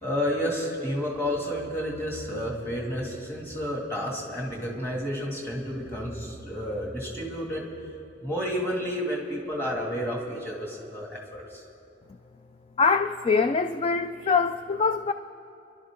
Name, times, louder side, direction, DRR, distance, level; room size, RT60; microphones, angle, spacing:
voice 1, 0.0-7.7 8.2-11.6, equal, 15° left, -2 dB, 2.4 m, -31 dB
voice 2, 12.8-15.1, left 4 dB, 30° left, 9 dB, 0.3 m, -24 dB
28.5 x 12.0 x 3.7 m, 2.8 s
head